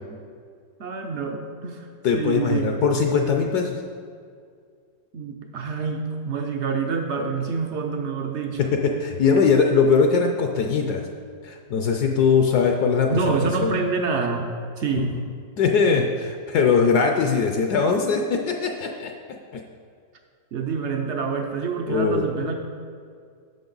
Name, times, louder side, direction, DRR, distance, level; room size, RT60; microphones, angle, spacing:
voice 1, 0.8-2.7 5.1-8.8 13.1-14.5 14.8-15.2 20.5-22.7, right 5 dB, 75° right, 3 dB, 0.6 m, -27 dB
voice 2, 2.0-3.8 8.6-11.0 11.4-13.3 13.6-13.7 15.0-15.1 15.6-19.1 19.5-19.6 21.9-22.2, left 5 dB, 70° left, 3 dB, 1.0 m, -21 dB
10.5 x 6.4 x 3.9 m, 2.2 s
omnidirectional pair, 2.0 m